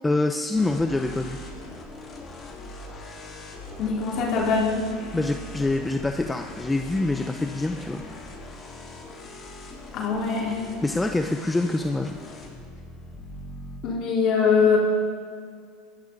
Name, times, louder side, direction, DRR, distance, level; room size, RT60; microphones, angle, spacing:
voice 1, 0.0-1.4 5.1-8.0 10.8-12.2, left 2 dB, 10° left, 6 dB, 0.7 m, -25 dB
sound 1, 0.5-13.8, left 2 dB, 30° left, 4.0 m, -41 dB
voice 2, 3.8-4.8 9.9-10.6 13.8-14.8, left 5 dB, 55° left, -4 dB, 4.3 m, -22 dB
19.0 x 14.0 x 4.1 m, 2.1 s
supercardioid pair, 105°, 0 cm